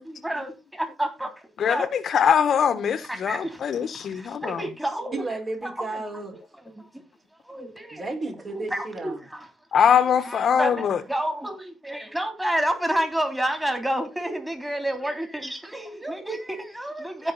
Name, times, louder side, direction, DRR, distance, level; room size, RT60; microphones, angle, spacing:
voice 1, 0.0-1.9 3.0-5.2 5.6-6.0 6.6-7.0 7.4-8.1 8.5-9.5 10.2-17.3, right 1 dB, 5° right, 3.1 m, -30 dB
voice 2, 1.6-4.6 9.7-11.0, left 7 dB, 60° left, 1.2 m, -22 dB
voice 3, 5.1-6.3 7.9-9.2, right 2 dB, 40° right, 4.8 m, -33 dB
15.5 x 5.4 x 4.0 m
cardioid pair, 90°, 0 cm